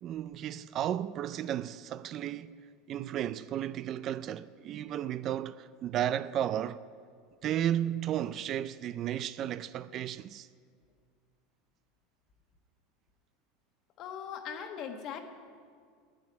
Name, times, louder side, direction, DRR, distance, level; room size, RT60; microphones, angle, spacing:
voice 1, 0.0-2.5 2.9-6.8 7.4-10.5, right 11 dB, 40° right, 0.3 m, -33 dB
voice 2, 14.0-15.2, left 7 dB, 50° left, 1.3 m, -39 dB
9.9 x 8.6 x 9.6 m
supercardioid pair, 125°, 0 cm